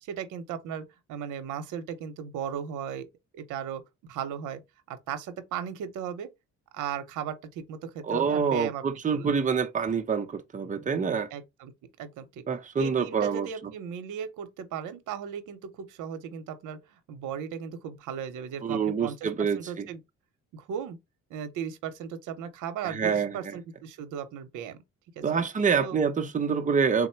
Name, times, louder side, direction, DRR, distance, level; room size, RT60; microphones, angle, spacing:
voice 1, 0.0-3.1 3.3-4.6 4.9-6.3 6.7-8.8 9.1-9.3 11.3-11.7 12.0-12.4 12.8-19.2 19.6-20.0 20.5-21.0 21.3-24.8 25.2-25.3 25.8-26.0, right 8 dB, 90° right, 0.7 m, -36 dB
voice 2, 8.1-11.3 12.5-13.5 18.6-19.9 22.8-23.5 25.2-27.1, right 6 dB, 25° right, 0.6 m, -26 dB
3.7 x 2.1 x 4.3 m
cardioid pair, 90°, 30 cm